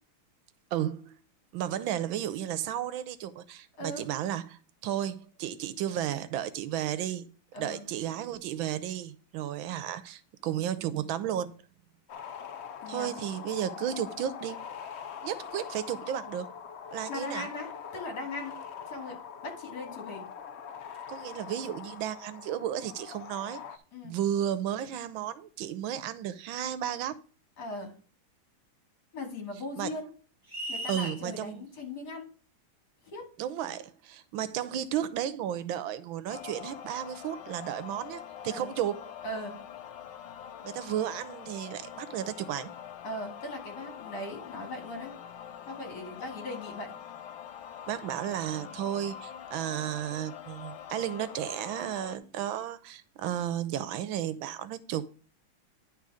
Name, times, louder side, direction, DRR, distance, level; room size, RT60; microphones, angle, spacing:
voice 1, 0.7-1.1 1.5-7.3 7.6-11.5 12.9-14.6 15.2-16.5 16.9-17.5 21.1-23.6 24.0-27.2 29.8-29.9 30.9-31.6 33.4-39.0 40.6-42.7 47.9-55.1, right 10 dB, 80° right, 1.4 m, -33 dB
voice 2, 7.5-7.8 12.8-13.1 17.1-18.6 18.9-19.2 19.4-20.3 23.9-24.2 27.6-27.9 29.1-30.1 30.7-32.3 33.1-33.2 38.5-38.7 39.2-39.5 43.0-45.1 45.7-46.9, left 1 dB, 55° left, 3.1 m, -39 dB
sound 1, 12.1-23.8, left 7 dB, 70° left, 0.6 m, -43 dB
sound 2, 30.5-31.2, right 1 dB, 15° right, 0.9 m, -36 dB
sound 3, 36.3-52.2, left 9 dB, 85° left, 1.5 m, -44 dB
10.5 x 4.0 x 4.8 m
omnidirectional pair, 2.2 m